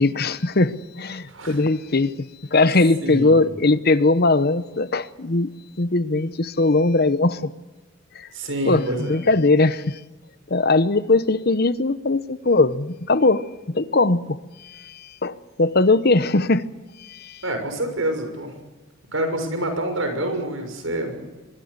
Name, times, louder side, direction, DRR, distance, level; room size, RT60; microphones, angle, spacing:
voice 1, 0.0-2.1 2.5-5.5 5.8-7.5 8.1-8.3 8.6-10.0 10.5-16.7 17.0-17.4, left 3 dB, 50° left, 15 dB, 1.0 m, -20 dB
voice 2, 3.0-3.4 8.3-9.2 17.4-18.5 19.1-21.2, right 1 dB, 90° right, 6 dB, 6.4 m, -27 dB
24.5 x 22.0 x 6.7 m, 1.1 s
head